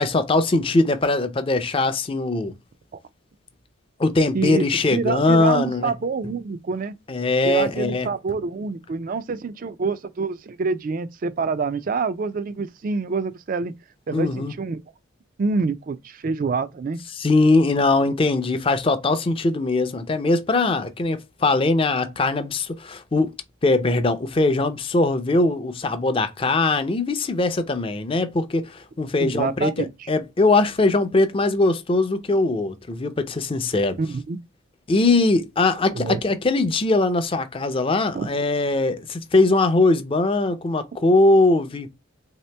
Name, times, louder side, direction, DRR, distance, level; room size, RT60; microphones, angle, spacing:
voice 1, 0.0-2.5 4.0-5.9 7.1-8.1 14.1-14.5 17.1-23.3 23.6-34.0 34.9-41.9, left 2 dB, 25° left, 0.4 m, -21 dB
voice 2, 4.3-4.6 4.9-6.9 7.4-13.7 14.1-14.8 15.4-17.0 29.2-29.9 34.0-34.4 35.9-36.2 38.1-38.3, right 4 dB, 40° right, 0.3 m, -26 dB
3.4 x 2.9 x 3.3 m
head